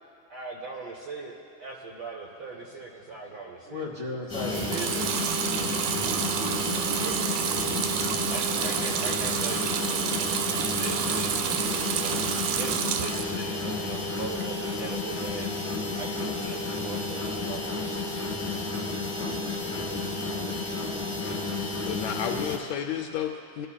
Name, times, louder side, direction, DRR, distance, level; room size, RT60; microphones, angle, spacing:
voice 1, 0.3-3.9 4.7-5.1 7.0-7.4 8.3-10.2 10.7-15.6 15.9-18.1, right 3 dB, 65° right, -2 dB, 1.3 m, -40 dB
voice 2, 2.4-2.7 3.0-3.3 3.7-5.7 6.1-7.5 18.4-21.0, left 2 dB, 45° right, -4 dB, 2.8 m, -40 dB
sound 1, 4.3-22.6, left 3 dB, 10° left, 0.8 m, -32 dB
Water tap faucet / Sink (filling or washing) / Liquid, 4.4-13.4 13.8-14.5, right 8 dB, 85° right, 1.4 m, -29 dB
voice 3, 21.8-23.7, left 8 dB, 80° left, 3 dB, 1.7 m, -32 dB
23.0 x 12.5 x 2.2 m, 2.6 s
omnidirectional pair, 3.4 m